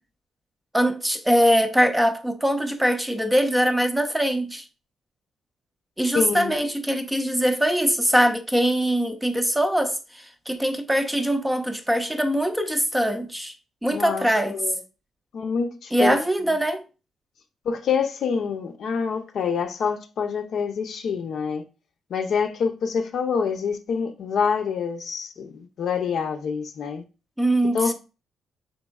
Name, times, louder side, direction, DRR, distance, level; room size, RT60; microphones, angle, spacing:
voice 1, 0.7-4.6 6.0-13.5 13.8-14.6 15.9-16.8 27.4-27.9, equal, 5° right, 0.5 m, -22 dB
voice 2, 6.1-6.6 13.9-14.8 15.3-16.2 16.5-16.6 17.6-21.6 22.1-27.0 27.7-27.9, left 6 dB, 65° left, 0.6 m, -26 dB
5.2 x 4.1 x 2.3 m
cardioid pair, 105°, 0 cm